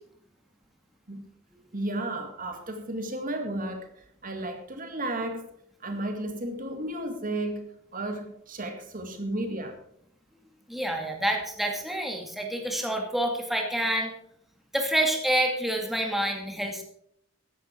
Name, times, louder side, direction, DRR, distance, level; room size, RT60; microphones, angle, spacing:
voice 1, 1.7-3.9 4.2-5.5 5.8-7.6 7.9-9.8, right 1 dB, 40° right, 5 dB, 2.1 m, -33 dB
voice 2, 10.7-14.1 14.7-16.8, right 1 dB, ahead, 2 dB, 2.1 m, -28 dB
15.0 x 12.0 x 4.5 m, 0.70 s
head